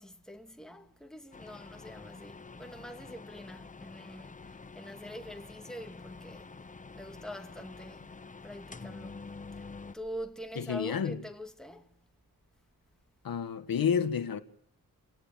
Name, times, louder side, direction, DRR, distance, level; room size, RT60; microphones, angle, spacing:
voice 1, 0.0-6.5 6.9-8.1 8.4-9.2 9.5-12.0, equal, ahead, 2.3 m, -45 dB
sound 1, 1.3-10.0, left 4 dB, 20° left, 1.0 m, -47 dB
voice 2, 10.6-11.2 13.2-14.4, left 7 dB, 75° left, 1.9 m, -30 dB
28.0 x 18.0 x 7.6 m
wide cardioid pair, 115°, 35 cm